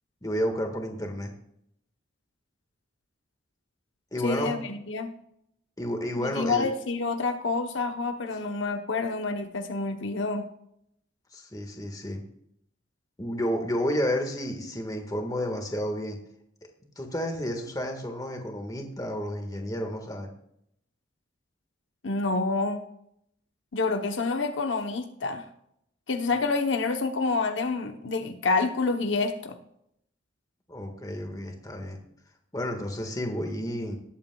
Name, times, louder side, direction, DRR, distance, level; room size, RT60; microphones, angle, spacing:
voice 1, 0.2-1.3 4.1-4.6 5.8-6.7 11.3-12.2 13.2-16.2 17.0-20.3 30.7-32.0 32.5-34.0, equal, 20° left, 3 dB, 1.6 m, -31 dB
voice 2, 4.2-5.1 6.2-10.5 22.0-22.9 23.7-25.5 26.1-29.6, left 3 dB, 70° left, 6 dB, 0.9 m, -28 dB
19.0 x 8.5 x 2.3 m, 0.74 s
head